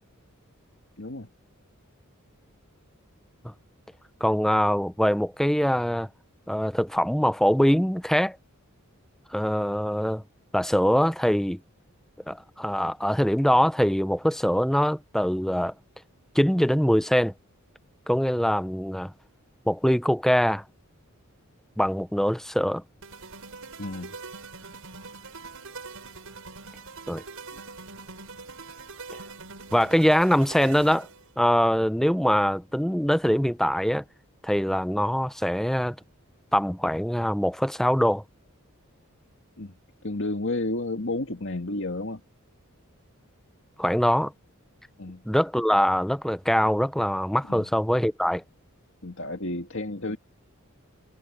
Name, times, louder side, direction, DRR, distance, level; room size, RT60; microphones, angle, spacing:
voice 1, 1.0-1.3 23.8-24.2 27.5-27.6 39.6-39.7 40.0-42.2 45.0-45.2 47.5-47.7 49.0-50.2, left 2 dB, 60° left, 2.1 m, -31 dB
voice 2, 4.2-6.1 6.5-8.4 9.3-10.2 10.5-11.6 12.3-15.7 16.3-17.3 18.1-19.1 19.7-20.6 21.8-22.8 27.1-27.2 29.7-31.1 31.4-34.0 34.4-36.0 36.5-38.2 43.8-44.3 45.3-48.4, equal, ahead, 0.7 m, -23 dB
sound 1, 23.0-31.4, right 4 dB, 75° right, 5.1 m, -43 dB
head